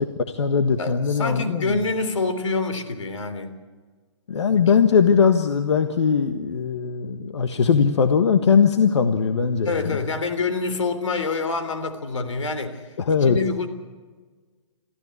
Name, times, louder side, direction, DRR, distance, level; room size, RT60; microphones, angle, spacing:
voice 1, 0.0-1.8 4.3-10.0 13.0-13.4, left 6 dB, 65° left, 7 dB, 1.5 m, -20 dB
voice 2, 0.8-3.5 4.5-4.7 9.6-12.8 13.2-13.7, left 3 dB, 90° left, 9 dB, 3.3 m, -26 dB
23.5 x 15.0 x 8.4 m, 1.4 s
hypercardioid pair, 160°, 16 cm